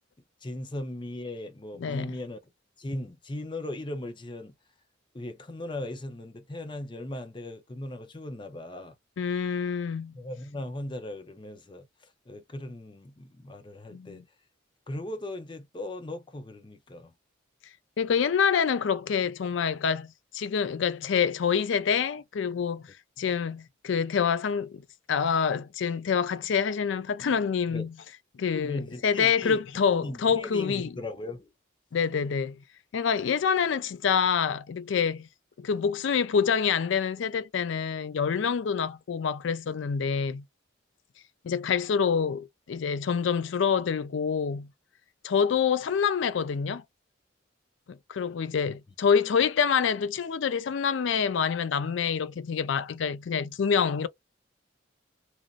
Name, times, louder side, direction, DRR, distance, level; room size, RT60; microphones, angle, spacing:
voice 1, 0.4-2.4 2.8-4.5 5.1-8.9 10.1-11.9 12.3-14.2 14.9-17.1 27.7-27.9 28.5-29.6 29.9-31.5 48.7-48.8, left 1 dB, 25° left, 0.5 m, -38 dB
voice 2, 1.8-2.2 9.2-10.2 13.9-14.2 18.0-20.1 20.3-22.8 23.2-27.9 28.4-31.0 31.9-32.6 32.9-35.3 35.6-40.4 41.4-44.7 45.2-46.8 47.9-54.1, left 6 dB, 70° left, 0.4 m, -26 dB
2.9 x 2.5 x 2.4 m
head